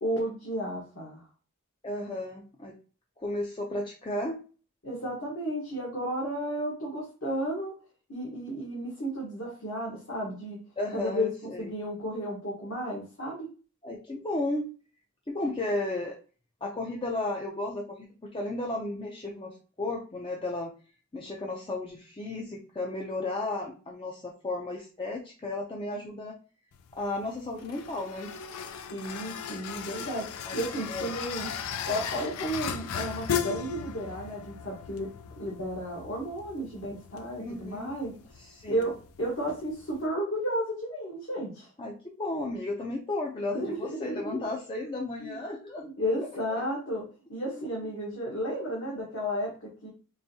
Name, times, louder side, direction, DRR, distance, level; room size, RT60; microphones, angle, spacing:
voice 1, 0.0-1.2 4.8-7.7 8.1-10.6 10.9-11.3 11.6-13.5 28.9-31.5 31.8-35.1 35.4-38.2 38.7-41.7 43.5-44.5 45.2-45.3 45.8-47.0 47.3-49.9, equal, 60° left, -4 dB, 1.2 m, -33 dB
voice 2, 1.8-2.8 3.2-4.4 10.8-11.7 13.8-14.7 15.3-16.2 16.6-20.7 21.1-26.3 26.9-28.4 30.5-30.6 30.9-31.2 37.4-37.9 38.4-38.8 41.8-45.8 46.5-46.6 47.5-47.9, left 2 dB, 20° left, -1 dB, 0.4 m, -34 dB
sound 1, 26.7-40.1, left 7 dB, 85° left, 0.4 m, -37 dB
4.7 x 2.6 x 2.7 m, 0.37 s
head